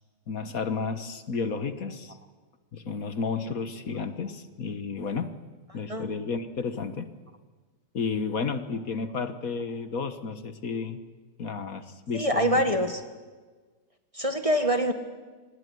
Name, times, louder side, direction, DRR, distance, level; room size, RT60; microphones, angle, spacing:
voice 1, 0.3-2.2 2.7-5.3 5.7-7.1 7.9-11.0 11.4-12.8, left 4 dB, 60° left, 10 dB, 1.7 m, -32 dB
voice 2, 12.1-13.0 14.1-14.9, equal, 20° right, 6 dB, 1.6 m, -25 dB
25.0 x 20.0 x 9.5 m, 1.4 s
omnidirectional pair, 1.7 m